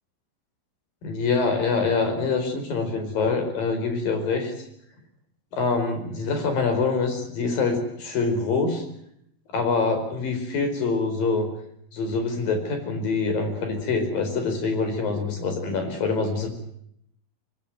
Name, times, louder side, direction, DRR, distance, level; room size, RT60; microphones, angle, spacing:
voice 1, 1.0-4.7 5.5-8.8 9.5-11.5 11.9-16.5, left 4 dB, 55° left, 6 dB, 6.4 m, -25 dB
26.0 x 19.5 x 7.8 m, 0.72 s
omnidirectional pair, 5.0 m